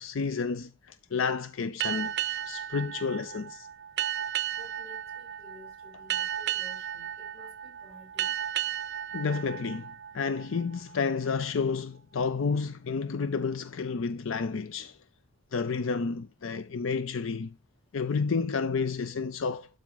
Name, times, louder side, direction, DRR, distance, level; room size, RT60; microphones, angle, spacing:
voice 1, 0.0-3.7 9.1-15.0 15.5-17.5 17.9-19.7, left 5 dB, 65° left, 0.5 m, -31 dB
sound 1, 1.8-11.0, right 11 dB, 55° right, 0.5 m, -34 dB
voice 2, 4.5-8.3, left 2 dB, 30° left, 3.7 m, -53 dB
12.0 x 4.7 x 4.0 m
head